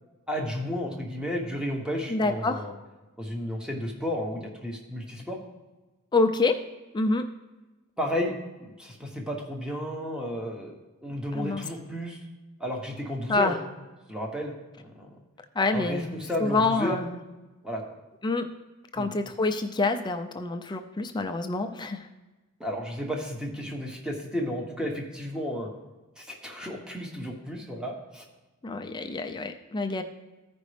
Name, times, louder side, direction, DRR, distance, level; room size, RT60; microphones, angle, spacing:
voice 1, 0.3-2.7 3.2-5.4 8.0-8.3 8.6-10.7 11.0-12.2 12.6-13.6 14.1-15.2 15.7-17.0 17.6-17.8 19.0-19.1 22.6-25.7 26.2-28.2, equal, 5° right, 0 dB, 1.0 m, -33 dB
voice 2, 2.1-2.6 6.1-6.6 6.9-7.2 11.3-11.6 13.3-13.6 15.6-17.2 18.2-18.5 18.9-22.1 28.6-30.0, left 3 dB, 20° left, 6 dB, 0.4 m, -27 dB
14.5 x 5.1 x 3.3 m, 1.1 s
head